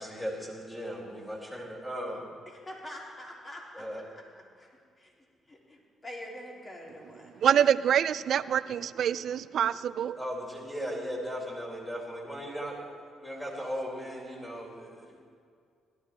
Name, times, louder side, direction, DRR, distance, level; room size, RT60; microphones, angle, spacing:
voice 1, 0.0-2.3 3.7-4.1 10.2-15.2, equal, 15° left, -2 dB, 3.8 m, -37 dB
voice 2, 2.5-3.9 4.6-4.7 5.0-5.1 5.5-7.7, left 1 dB, 30° left, -2 dB, 3.2 m, -45 dB
voice 3, 7.2-10.2, right 9 dB, 65° right, 16 dB, 0.4 m, -26 dB
17.5 x 12.5 x 4.4 m, 2.2 s
cardioid pair, 90°, 0 cm